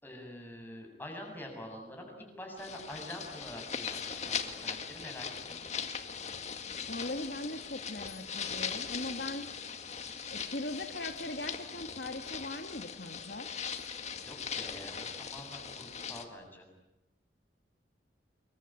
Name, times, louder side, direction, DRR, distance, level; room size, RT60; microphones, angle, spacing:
voice 1, 0.0-5.8 14.3-16.7, left 1 dB, 10° left, 2 dB, 7.4 m, -46 dB
sound 1, 2.6-16.2, left 6 dB, 35° left, 2.0 m, -40 dB
voice 2, 6.9-9.5 10.3-13.5, left 2 dB, 60° left, 6 dB, 1.6 m, -40 dB
27.5 x 23.5 x 9.0 m, 0.94 s
head